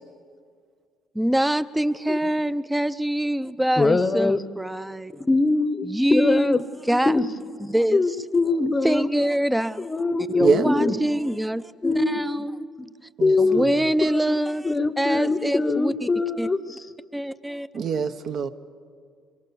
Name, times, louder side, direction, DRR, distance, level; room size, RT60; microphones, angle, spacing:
voice 1, 1.2-5.2 5.8-6.6 6.8-7.2 7.6-8.0 8.8-9.9 10.3-12.6 13.4-14.7 15.0-16.1 16.4-16.5 17.1-17.7, right 1 dB, 5° right, 0.6 m, -24 dB
voice 2, 3.8-4.4 5.2-6.6 7.1-7.2 7.9-9.1 9.8-11.0 11.8-12.2 13.2-13.6 14.0-14.4 14.6-16.6, left 3 dB, 20° left, 0.9 m, -22 dB
voice 3, 13.2-13.7 17.7-18.5, right 5 dB, 55° right, 1.0 m, -24 dB
24.5 x 23.5 x 7.0 m
cardioid pair, 115°, 0 cm